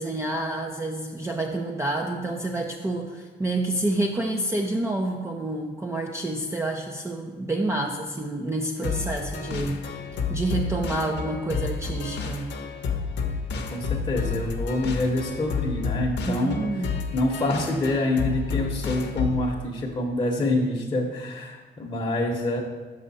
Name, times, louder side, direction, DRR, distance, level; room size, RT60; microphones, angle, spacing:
voice 1, 0.0-9.8 10.3-12.5 16.2-17.0, right 2 dB, 15° right, 1 dB, 0.5 m, -28 dB
sound 1, 8.8-19.5, left 5 dB, 60° left, 0.8 m, -30 dB
voice 2, 13.5-22.6, left 2 dB, 25° left, -2 dB, 0.9 m, -26 dB
6.4 x 5.4 x 4.1 m, 1.3 s
cardioid pair, 90°, 20 cm